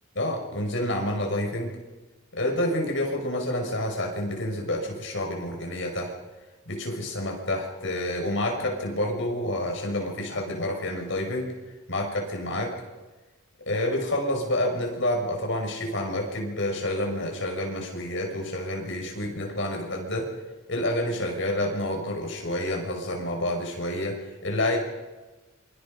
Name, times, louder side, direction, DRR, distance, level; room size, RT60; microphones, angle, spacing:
voice 1, 0.2-1.8 2.3-6.1 6.7-11.5 11.9-12.7 13.7-20.3 20.7-24.8, left 1 dB, 60° left, 1 dB, 5.9 m, -28 dB
27.0 x 24.0 x 5.3 m, 1.2 s
head